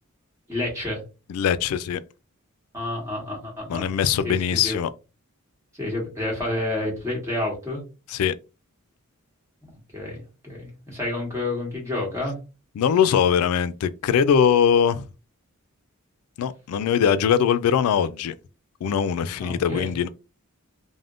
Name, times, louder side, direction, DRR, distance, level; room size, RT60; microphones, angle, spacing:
voice 1, 0.5-1.0 2.7-3.9 4.2-4.8 5.8-7.8 9.9-12.4 19.4-19.9, left 1 dB, 15° right, 1.4 m, -29 dB
voice 2, 1.3-2.0 3.7-4.9 8.1-8.3 12.8-15.1 16.4-18.3 18.8-20.1, left 8 dB, 90° left, 0.3 m, -21 dB
3.4 x 2.1 x 2.4 m
head